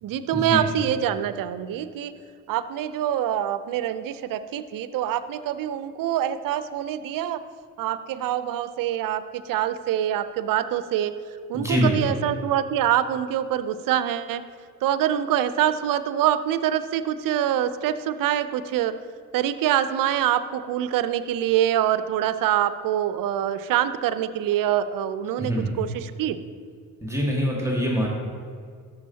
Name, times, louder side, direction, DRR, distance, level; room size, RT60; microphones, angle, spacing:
voice 1, 0.0-2.1 2.5-7.4 7.8-11.1 11.5-14.4 14.8-18.9 19.3-25.5 25.8-26.4, right 11 dB, 55° right, 13 dB, 0.6 m, -25 dB
voice 2, 11.5-12.1 25.4-25.7 27.0-28.1, equal, 5° right, -3 dB, 1.8 m, -24 dB
13.0 x 6.4 x 2.8 m, 2.1 s
hypercardioid pair, 55°, 41 cm